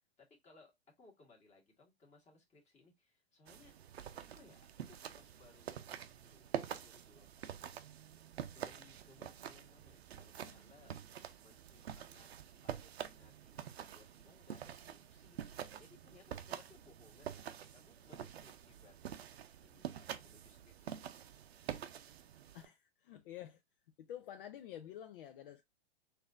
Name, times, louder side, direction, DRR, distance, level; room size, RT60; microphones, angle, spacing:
voice 1, 0.2-0.7 1.0-3.7 4.1-7.7 8.5-12.3 12.6-15.4 15.8-19.2 19.6-20.9 23.2-23.3, left 3 dB, 20° left, 1.7 m, -65 dB
sound 1, 3.5-22.7, right 9 dB, 80° right, 0.6 m, -47 dB
voice 2, 22.5-23.6 24.0-25.6, left 11 dB, 55° left, 0.5 m, -49 dB
4.1 x 2.7 x 3.6 m
hypercardioid pair, 120°, 32 cm